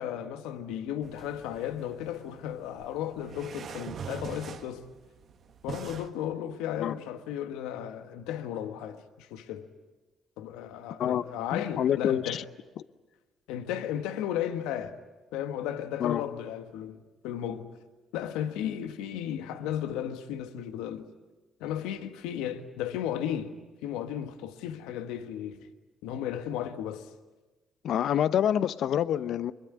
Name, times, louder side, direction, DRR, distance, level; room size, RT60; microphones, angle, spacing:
voice 1, 0.0-4.9 5.6-9.7 10.4-12.4 13.5-15.0 15.3-17.7 18.1-21.1 21.6-23.5 23.8-25.7 26.0-27.1, left 10 dB, 85° left, 1.3 m, -34 dB
sound 1, 1.0-6.1, right 7 dB, 60° right, 1.5 m, -43 dB
voice 2, 11.5-12.4 16.0-16.2 27.8-29.5, left 10 dB, 70° left, 0.8 m, -27 dB
24.0 x 21.5 x 9.6 m
supercardioid pair, 60°, 0 cm